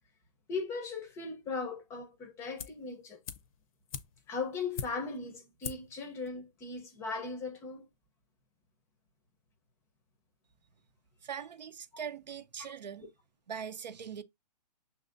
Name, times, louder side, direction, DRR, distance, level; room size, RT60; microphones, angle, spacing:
voice 1, 0.5-3.2 4.3-7.9 13.0-13.1, left 4 dB, 10° left, 0.6 m, -38 dB
sound 1, 2.6-2.9 3.2-5.2 5.6-6.0 6.3-6.4, left 7 dB, 55° left, 0.6 m, -42 dB
voice 2, 11.2-13.1 13.5-14.2, right 7 dB, 85° right, 0.6 m, -41 dB
6.0 x 2.7 x 2.5 m
hypercardioid pair, 145°, 21 cm